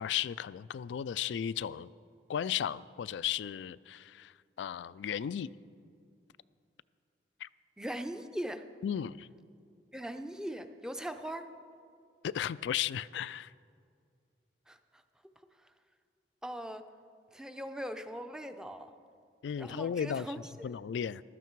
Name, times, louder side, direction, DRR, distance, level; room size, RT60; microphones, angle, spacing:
voice 1, 0.0-1.9 2.3-4.3 4.6-5.5 7.4-7.5 8.8-9.3 12.2-13.5 19.4-20.3 20.6-21.2, left 9 dB, 90° left, 18 dB, 0.3 m, -35 dB
voice 2, 7.8-8.6 9.9-11.5 14.7-14.8 16.4-16.9 17.3-19.0 19.6-20.7, equal, 5° right, 8 dB, 0.5 m, -40 dB
15.0 x 12.5 x 4.6 m, 2.3 s
head